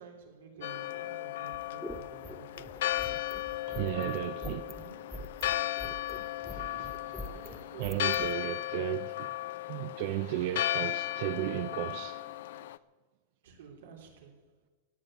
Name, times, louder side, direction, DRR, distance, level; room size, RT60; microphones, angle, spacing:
voice 1, 0.0-2.8 3.9-5.1 7.2-8.3 13.4-14.4, right 6 dB, 85° right, 3.6 m, -50 dB
Church bell, 0.6-12.8, left 15 dB, 65° left, 0.5 m, -35 dB
sound 1, 1.4-8.3, equal, ahead, 0.6 m, -44 dB
voice 2, 3.7-4.6 6.4-7.2 7.8-9.3 9.7-12.7, right 14 dB, 45° right, 0.4 m, -35 dB
17.0 x 8.7 x 8.0 m
supercardioid pair, 170°, 0 cm